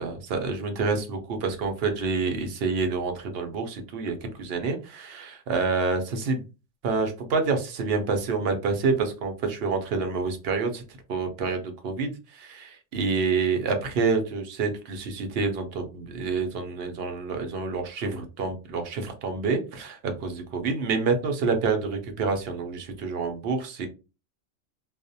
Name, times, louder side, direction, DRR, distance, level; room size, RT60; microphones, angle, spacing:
voice 1, 0.0-6.4 6.8-10.8 11.1-23.9, right 4 dB, 60° right, 5 dB, 0.7 m, -28 dB
2.4 x 2.0 x 2.6 m, 0.31 s
omnidirectional pair, 1.3 m